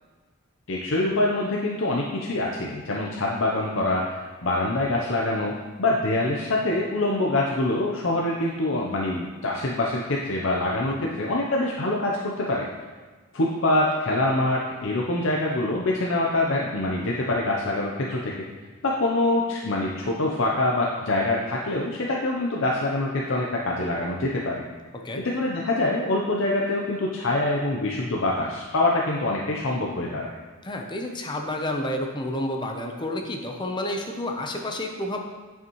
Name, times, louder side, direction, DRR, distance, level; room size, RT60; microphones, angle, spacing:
voice 1, 0.7-12.7 13.3-18.3 18.8-24.6 25.2-30.3, left 2 dB, 65° left, -2 dB, 0.7 m, -25 dB
voice 2, 30.6-35.2, left 1 dB, 20° left, 3 dB, 0.7 m, -30 dB
9.6 x 5.8 x 3.1 m, 1.4 s
head